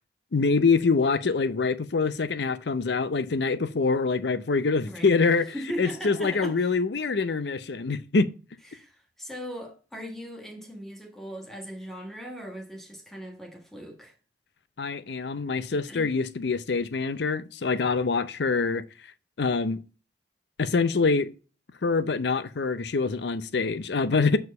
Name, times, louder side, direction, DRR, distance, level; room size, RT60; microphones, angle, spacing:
voice 1, 0.3-8.3 14.8-18.8 19.4-19.8 20.6-21.3 21.8-24.4, left 4 dB, 70° left, 0.6 m, -25 dB
voice 2, 4.9-5.2 5.5-6.7 8.7-14.1 15.7-16.1, equal, ahead, 1.6 m, -39 dB
6.4 x 4.6 x 5.4 m
head